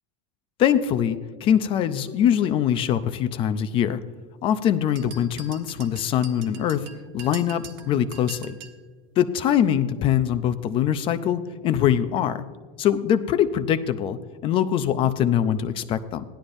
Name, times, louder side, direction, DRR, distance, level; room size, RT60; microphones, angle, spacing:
voice 1, 0.6-4.0 4.4-6.9 7.1-8.6 9.2-12.4 12.8-14.2 14.4-16.2, left 9 dB, 30° left, 11 dB, 0.5 m, -23 dB
sound 1, 5.0-8.8, right 6 dB, 70° right, 1.4 m, -43 dB
16.0 x 11.5 x 2.6 m, 1.5 s
supercardioid pair, 165°, 18 cm